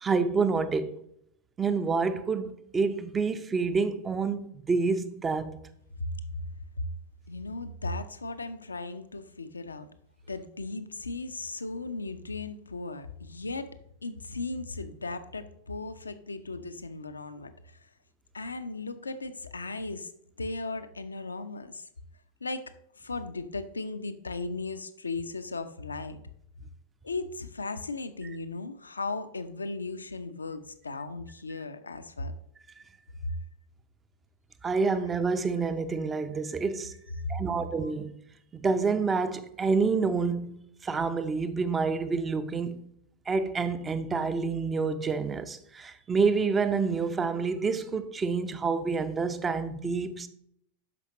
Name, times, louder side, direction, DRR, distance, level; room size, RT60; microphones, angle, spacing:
voice 1, 0.0-0.9 1.6-5.5 34.6-36.9 37.3-38.1 38.5-40.6 40.8-42.8 43.3-50.3, right 4 dB, 20° right, 0.7 m, -28 dB
voice 2, 7.3-9.9 10.3-13.8 14.0-17.5 18.3-20.1 20.4-21.8 22.4-22.6 23.0-26.2 27.0-32.3 33.2-33.3 37.8-37.9, left 3 dB, 75° left, 0.6 m, -36 dB
12.0 x 4.9 x 3.0 m
figure-of-eight pair, 90°, 0 cm